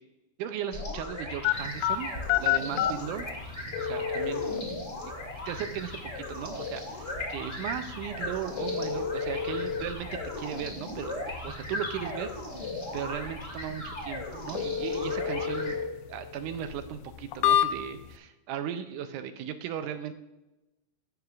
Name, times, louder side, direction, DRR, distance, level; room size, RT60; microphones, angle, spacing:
voice 1, 0.4-2.1 2.4-3.3 3.8-4.6 5.0-5.1 5.5-11.1 11.4-20.1, right 9 dB, 80° right, 9 dB, 1.9 m, -37 dB
sound 1, 0.7-15.7, left 1 dB, 30° left, 1.8 m, -38 dB
Phone Dial and call, 1.4-18.2, left 9 dB, 85° left, 2.2 m, -32 dB
15.5 x 6.2 x 2.4 m, 0.97 s
omnidirectional pair, 3.9 m